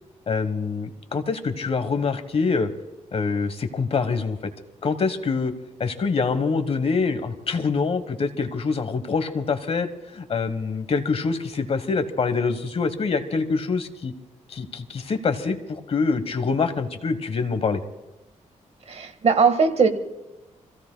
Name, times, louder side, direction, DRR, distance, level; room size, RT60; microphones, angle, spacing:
voice 1, 0.3-2.7 3.1-4.4 4.8-5.5 5.8-14.1 14.5-17.8, left 4 dB, 50° left, 9 dB, 1.3 m, -25 dB
voice 2, 18.9-19.9, right 5 dB, 55° right, 7 dB, 1.6 m, -19 dB
28.5 x 16.0 x 2.3 m, 1.0 s
cardioid pair, 100°, 13 cm